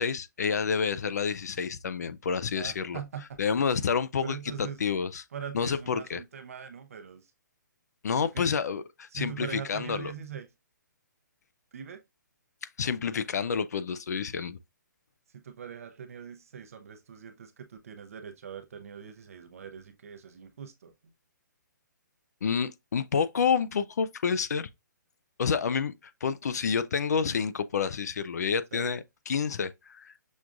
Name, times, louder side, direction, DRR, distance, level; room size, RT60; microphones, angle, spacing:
voice 1, 0.0-3.0 3.4-5.2 5.5-6.2 8.0-10.1 12.8-14.6 22.4-24.7 25.4-25.9 26.2-30.1, left 6 dB, 55° left, 0.4 m, -29 dB
voice 2, 2.5-3.4 4.2-4.8 5.3-7.3 8.2-8.5 9.1-10.5 11.7-12.0 15.3-20.9 28.7-28.9, right 8 dB, 45° right, 0.6 m, -42 dB
6.1 x 2.4 x 2.5 m
hypercardioid pair, 175°, 11 cm